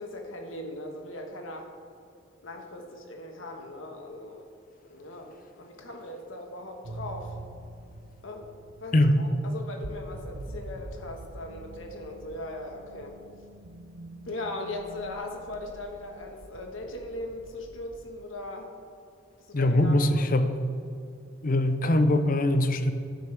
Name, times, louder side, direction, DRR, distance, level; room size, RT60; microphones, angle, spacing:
voice 1, 0.0-1.7 2.4-4.4 4.8-7.3 8.2-13.2 14.3-18.7 19.5-20.3, left 1 dB, 85° left, 3 dB, 1.4 m, -39 dB
sound 1, 6.8-18.3, right 2 dB, 70° right, 0.7 m, -45 dB
voice 2, 19.5-20.5 21.4-22.9, left 1 dB, 45° left, 9 dB, 0.7 m, -22 dB
14.5 x 10.5 x 3.4 m, 2.4 s
head